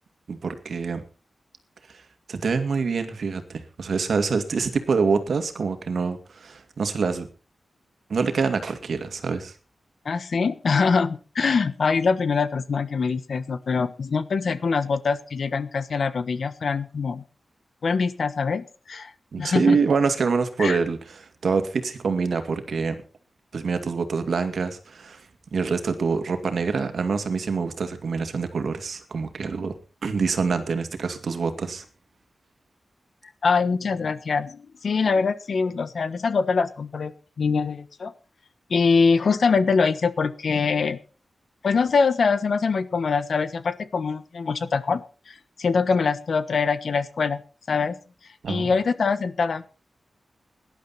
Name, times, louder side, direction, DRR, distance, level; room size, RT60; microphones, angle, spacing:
voice 1, 0.3-1.0 2.3-7.3 8.1-9.5 19.3-23.0 23.5-25.2 25.5-29.8 30.0-31.8 48.4-48.8, right 5 dB, 70° right, 8 dB, 2.2 m, -25 dB
voice 2, 10.0-17.2 17.8-19.1 19.4-19.8 20.6-20.8 33.4-37.1 37.4-38.1 38.7-41.0 41.6-47.4 47.7-47.9 48.5-49.6, left 5 dB, 65° left, 13 dB, 1.2 m, -23 dB
18.5 x 11.5 x 4.2 m, 0.36 s
wide cardioid pair, 130°, 0 cm